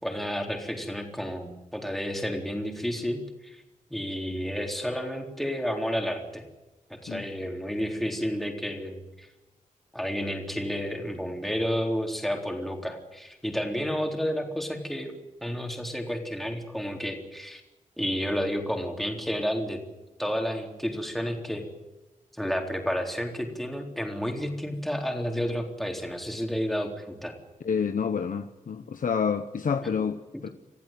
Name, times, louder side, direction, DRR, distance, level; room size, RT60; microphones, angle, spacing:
voice 1, 0.0-3.6 3.9-6.4 6.9-9.3 9.9-15.1 15.4-17.6 18.0-19.8 20.2-21.6 22.3-27.3 29.8-29.9, equal, ahead, 3.8 m, -31 dB
voice 2, 27.6-30.5, left 6 dB, 75° left, 1.0 m, -28 dB
26.0 x 15.5 x 9.1 m
wide cardioid pair, 120°, 14 cm